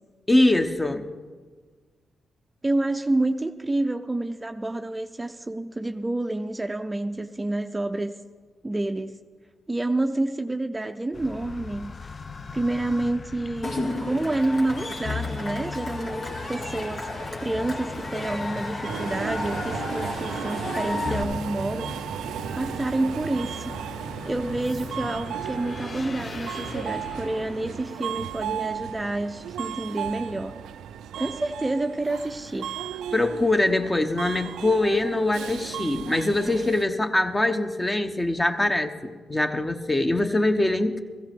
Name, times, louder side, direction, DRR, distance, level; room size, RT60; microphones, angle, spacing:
voice 1, 0.3-1.1 33.1-41.0, left 2 dB, 20° left, 7 dB, 1.0 m, -23 dB
voice 2, 2.6-8.1 8.6-9.2 9.7-11.9 12.5-13.8 14.0-17.0 17.3-21.9 22.6-23.7 24.2-30.5 31.2-33.0, right 2 dB, 20° right, 7 dB, 0.5 m, -28 dB
sound 1, 11.1-29.1, left 5 dB, 45° left, 0.5 m, -39 dB
Cheering / Crowd, 13.6-21.2, left 2 dB, 65° left, 2.4 m, -33 dB
Subway metro underground, 18.8-36.8, right 9 dB, 85° right, 0.3 m, -35 dB
15.5 x 15.0 x 3.6 m, 1.5 s
supercardioid pair, 55°, 0 cm